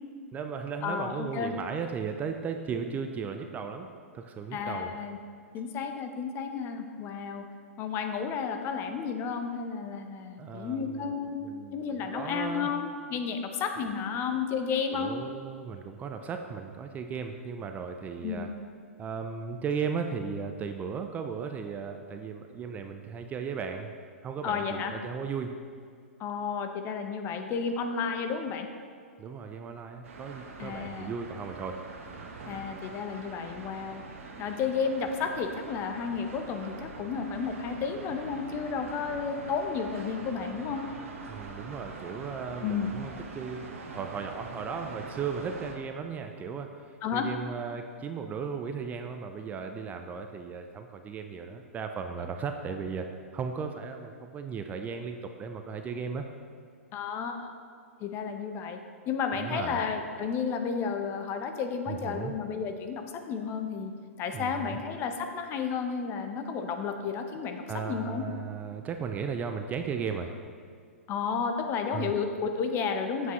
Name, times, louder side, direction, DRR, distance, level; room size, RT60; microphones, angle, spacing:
voice 1, 0.3-4.9 10.4-12.7 14.9-18.5 19.0-23.9 24.2-25.5 29.2-31.8 41.3-53.1 53.3-56.3 59.4-59.8 61.9-62.3 64.3-64.8 67.7-70.3 71.9-72.1, right 6 dB, 20° right, 6 dB, 0.4 m, -36 dB
voice 2, 0.8-1.5 4.5-5.2 5.5-7.5 7.8-11.4 11.7-15.1 18.2-18.5 24.4-24.9 26.2-28.7 30.6-31.1 32.4-34.0 34.4-40.8 42.6-42.9 47.0-47.3 56.9-57.5 58.0-58.8 59.1-63.9 64.2-68.2 71.1-73.3, left 6 dB, 30° left, 6 dB, 0.7 m, -32 dB
sound 1, 30.0-45.7, right 4 dB, 65° right, 1.1 m, -44 dB
8.1 x 7.5 x 3.1 m, 2.1 s
hypercardioid pair, 120°, 8 cm